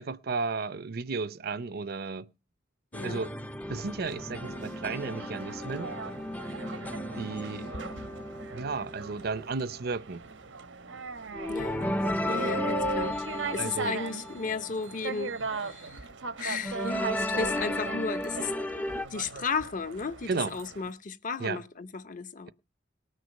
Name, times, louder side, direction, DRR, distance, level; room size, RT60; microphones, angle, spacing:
voice 1, 0.0-2.3 3.0-3.3 3.7-6.0 7.2-7.7 8.5-10.2 13.6-14.0 20.3-20.5 21.4-21.6, right 4 dB, 55° right, 0.6 m, -33 dB
voice 2, 2.9-3.2 11.5-11.9 12.3-13.2 13.5-16.1 16.4-22.5, left 4 dB, 45° left, 0.8 m, -34 dB
sound 1, 2.9-10.0 11.3-15.0 16.6-19.1, left 1 dB, 10° left, 0.5 m, -34 dB
sound 2, 4.1-20.9, right 4 dB, 85° right, 1.0 m, -39 dB
19.0 x 6.5 x 5.2 m
head